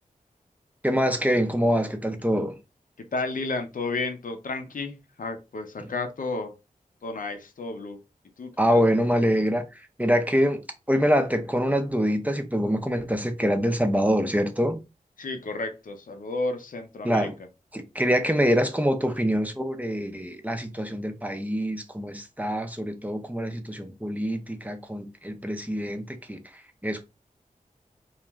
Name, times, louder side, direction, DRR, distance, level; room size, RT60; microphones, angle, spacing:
voice 1, 0.8-2.6 5.8-5.9 8.6-14.8 17.0-17.4 17.7-27.0, equal, 10° right, 0.5 m, -25 dB
voice 2, 3.1-6.5 7.0-8.0 8.4-8.8 15.2-17.3, left 3 dB, 70° left, 0.6 m, -32 dB
2.4 x 2.2 x 3.0 m
wide cardioid pair, 65°, 15 cm